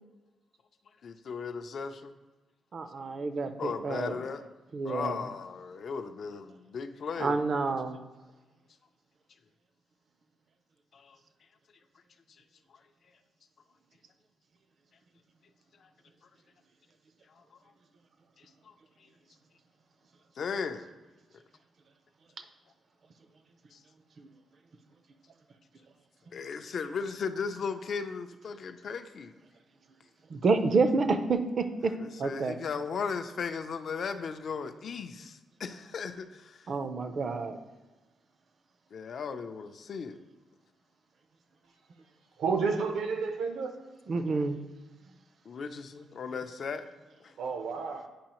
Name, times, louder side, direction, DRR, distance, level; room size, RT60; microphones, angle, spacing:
voice 1, 1.0-2.1 3.6-4.5 4.8-7.4 10.9-11.2 15.8-15.9 18.6-18.7 20.4-20.9 23.7-23.8 26.3-29.3 32.0-36.7 38.9-40.2 45.5-46.9 47.2-47.3, left 5 dB, 50° left, 8 dB, 0.4 m, -36 dB
voice 2, 2.7-4.1 4.7-5.2 7.2-8.0 24.2-24.3 30.3-31.9 32.2-32.5 36.7-37.6 44.1-44.6, right 4 dB, 40° right, 9 dB, 0.5 m, -28 dB
voice 3, 42.4-43.7 47.4-48.1, right 5 dB, 80° right, 6 dB, 0.8 m, -30 dB
8.5 x 5.5 x 3.0 m, 1.2 s
wide cardioid pair, 155°, 0 cm